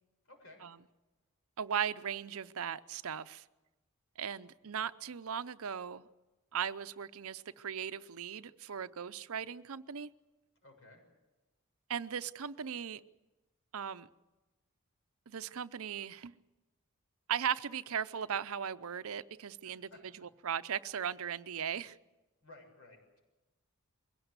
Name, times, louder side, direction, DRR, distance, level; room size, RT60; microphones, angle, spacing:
voice 1, 0.2-0.6 10.6-11.0 19.6-20.3 22.4-23.2, left 2 dB, 65° left, 2 dB, 7.1 m, -57 dB
voice 2, 1.6-3.4 4.2-6.1 6.5-10.1 11.9-13.0 13.7-14.1 15.3-16.3 17.3-19.9 20.4-22.0, right 8 dB, 70° right, 14 dB, 0.6 m, -37 dB
22.5 x 17.5 x 8.1 m, 1.1 s
head